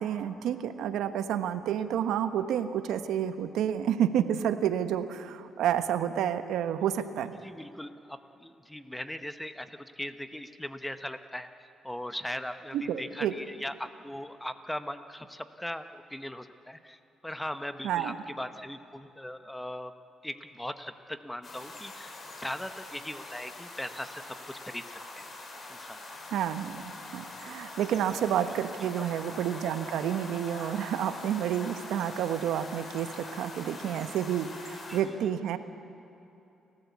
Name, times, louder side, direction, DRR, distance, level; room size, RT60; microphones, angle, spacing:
voice 1, 0.0-7.3 12.7-13.3 17.8-18.1 26.3-35.6, right 9 dB, 85° right, 10 dB, 1.1 m, -30 dB
voice 2, 7.4-19.9 20.2-25.3 25.7-26.0 27.9-29.4 34.9-35.1, left 1 dB, 5° left, 9 dB, 1.2 m, -40 dB
sound 1, 21.4-35.0, left 2 dB, 40° left, 4.3 m, -43 dB
29.5 x 14.5 x 8.4 m, 2.9 s
cardioid pair, 90°, 0 cm